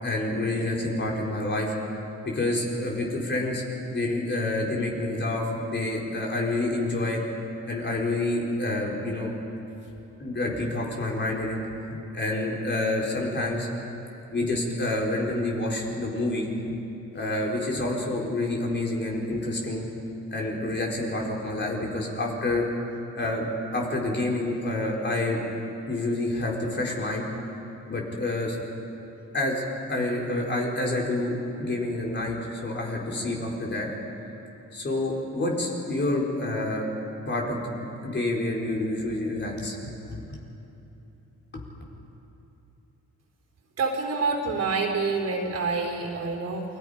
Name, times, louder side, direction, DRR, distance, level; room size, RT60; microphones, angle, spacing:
voice 1, 0.0-1.7 2.2-3.6 3.9-7.2 7.7-9.3 10.2-11.6 11.9-13.7 14.3-16.5 17.1-19.9 20.3-22.7 23.2-25.4 25.9-27.3 27.9-28.6 29.3-29.6 29.9-33.9 34.7-36.9 37.3-37.7 38.0-40.4 41.5-41.6, left 2 dB, 35° left, -2 dB, 4.5 m, -28 dB
voice 2, 43.8-46.6, right 4 dB, 55° right, 2 dB, 3.8 m, -27 dB
28.0 x 20.0 x 5.2 m, 3.0 s
cardioid pair, 90°, 30 cm